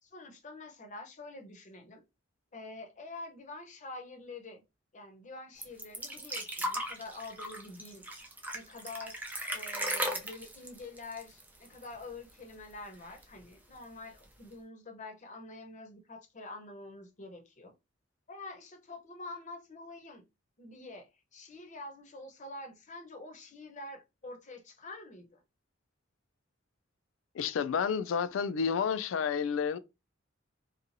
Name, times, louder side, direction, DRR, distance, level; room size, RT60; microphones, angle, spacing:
voice 1, 0.0-2.0 2.5-4.6 4.9-8.0 8.5-9.2 9.5-17.7 18.3-20.2 20.6-25.4, left 2 dB, 40° left, 0.7 m, -46 dB
sound 1, 5.6-12.0 12.3-12.4 12.7-13.4 14.2-14.3, right 1 dB, 10° right, 0.4 m, -37 dB
voice 2, 27.3-29.8, left 6 dB, 75° left, 0.3 m, -30 dB
2.8 x 2.3 x 2.6 m
head